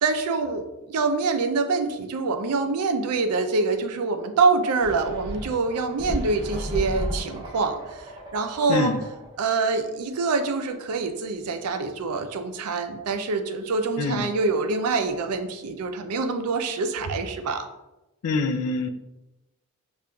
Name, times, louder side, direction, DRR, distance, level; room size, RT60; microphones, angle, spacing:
voice 1, 0.0-8.1 8.3-8.9 9.4-17.7, right 4 dB, 90° right, 7 dB, 0.4 m, -25 dB
sound 1, 4.8-9.4, equal, 20° right, 0.5 m, -34 dB
voice 2, 8.7-9.0 14.0-14.3 18.2-18.9, left 3 dB, 85° left, 8 dB, 0.3 m, -25 dB
5.2 x 2.4 x 2.2 m, 0.98 s
head